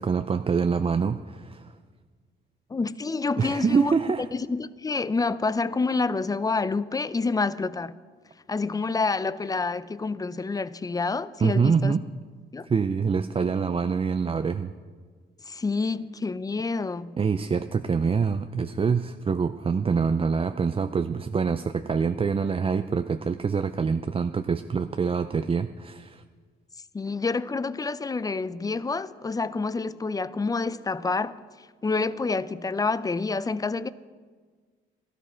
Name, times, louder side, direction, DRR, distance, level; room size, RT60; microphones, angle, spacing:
voice 1, 0.0-1.7 3.4-4.3 11.4-12.0 12.6-14.7 17.2-26.2, right 5 dB, 30° right, 0.5 m, -25 dB
voice 2, 2.7-3.9 4.3-8.0 8.5-12.0 12.5-12.7 15.5-17.2 26.9-31.4 31.8-33.9, left 4 dB, 20° left, 0.5 m, -28 dB
17.0 x 13.5 x 4.4 m
cardioid pair, 90°, 20 cm